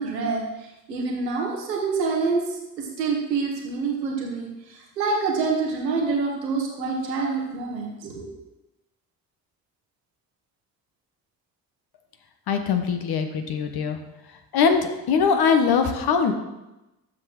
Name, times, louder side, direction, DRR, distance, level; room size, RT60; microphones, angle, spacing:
voice 1, 0.0-2.4 2.8-8.3, right 4 dB, 80° right, -1 dB, 1.6 m, -27 dB
voice 2, 12.5-14.0 14.5-16.3, left 6 dB, 50° left, 6 dB, 1.3 m, -21 dB
11.5 x 7.8 x 3.1 m, 0.98 s
figure-of-eight pair, 45°, 48 cm